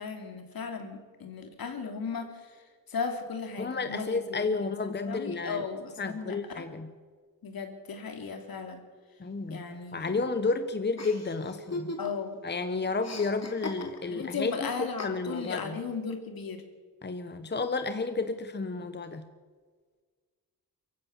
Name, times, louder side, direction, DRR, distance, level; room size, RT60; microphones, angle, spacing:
voice 1, 0.0-2.6 2.9-6.7 7.4-8.8 9.5-10.3 12.0-12.4 14.1-16.6, left 5 dB, 70° left, 5 dB, 3.0 m, -36 dB
voice 2, 3.6-5.6 6.0-6.9 9.2-9.6 9.9-11.9 12.4-14.5 15.0-15.8 17.0-19.2, left 3 dB, 30° left, 9 dB, 1.2 m, -31 dB
Chuckle chortle, 11.0-12.3 12.6-14.3 15.0-15.6, left 2 dB, 45° left, 3.1 m, -39 dB
23.0 x 15.5 x 7.3 m, 1.5 s
cardioid pair, 95°, 37 cm